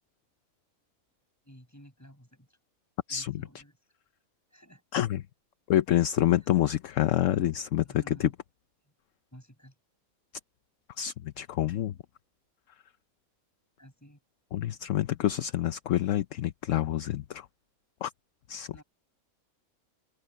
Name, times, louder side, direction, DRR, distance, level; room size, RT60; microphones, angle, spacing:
voice 1, 1.4-2.6 3.1-3.8 4.5-4.8 6.4-6.6 7.8-8.3 8.8-8.9 9.3-9.8 13.8-14.2 18.7-18.8, equal, 10° left, 7.4 m, -53 dB
voice 2, 5.7-8.3 11.0-11.9 14.5-17.5 18.0-18.1 18.5-18.7, left 12 dB, 65° left, 1.0 m, -27 dB
omnidirectional pair, 1.5 m